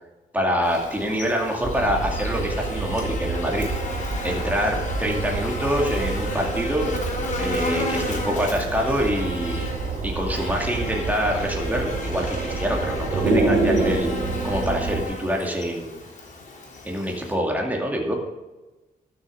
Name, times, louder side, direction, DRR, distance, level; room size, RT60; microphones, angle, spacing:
voice 1, 0.3-3.7 4.2-6.9 7.4-9.7 10.0-14.1 14.4-16.0 16.8-18.2, equal, 10° right, 0 dB, 2.3 m, -25 dB
Buzz, 0.6-17.3, left 1 dB, 55° left, 3.6 m, -34 dB
sound 1, 1.6-15.0, right 3 dB, 65° right, 3.5 m, -28 dB
12.0 x 6.7 x 6.6 m, 1.1 s
cardioid pair, 130°, 16 cm